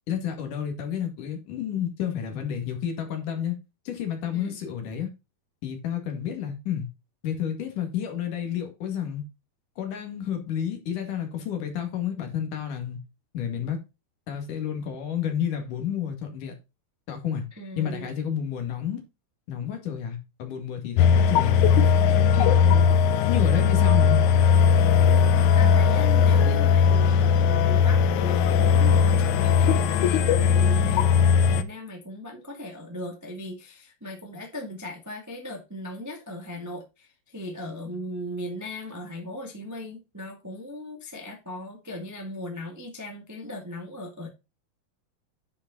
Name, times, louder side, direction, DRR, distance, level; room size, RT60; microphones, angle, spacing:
voice 1, 0.1-3.5 3.8-5.1 5.6-6.9 7.2-9.2 9.8-13.0 13.3-13.8 14.3-16.5 17.1-17.5 17.8-19.0 19.5-21.6 22.1-23.0 23.3-24.2, left 9 dB, 60° left, 3.4 m, -30 dB
voice 2, 17.6-18.1 25.1-44.3, left 1 dB, 15° right, 0.6 m, -38 dB
sound 1, 21.0-31.6, left 7 dB, 80° left, 1.8 m, -19 dB
9.9 x 5.4 x 4.0 m
omnidirectional pair, 4.3 m